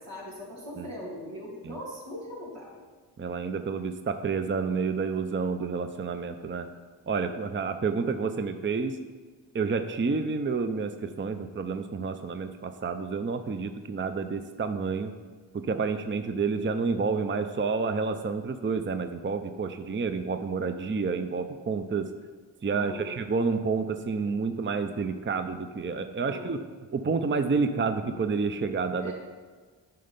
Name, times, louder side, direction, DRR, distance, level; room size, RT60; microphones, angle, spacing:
voice 1, 0.0-2.7 22.7-23.1 26.2-26.5 29.0-29.1, equal, 85° right, -5 dB, 2.9 m, -40 dB
voice 2, 3.2-6.7 7.1-9.0 9.5-15.1 15.5-22.1 22.6-26.7 26.9-29.1, right 4 dB, 25° right, 8 dB, 0.6 m, -29 dB
9.4 x 5.6 x 5.3 m, 1.4 s
cardioid pair, 45°, 43 cm